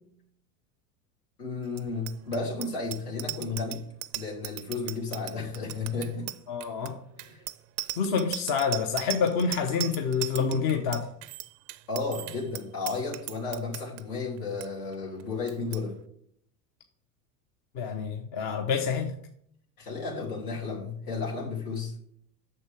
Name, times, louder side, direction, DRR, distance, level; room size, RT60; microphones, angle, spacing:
voice 1, 1.4-3.8 4.1-6.3 7.2-7.4 11.9-15.9 19.8-21.9, left 4 dB, 70° left, -3 dB, 3.0 m, -33 dB
Bicycle bell, 1.7-14.0 14.4-14.7 14.9-15.2 15.5-15.8, right 19 dB, 35° right, 0.4 m, -38 dB
voice 2, 6.5-7.0 8.0-11.1 17.7-19.1, left 6 dB, 45° left, 4 dB, 1.0 m, -27 dB
9.4 x 6.8 x 3.5 m, 0.68 s
hypercardioid pair, 85°, 50 cm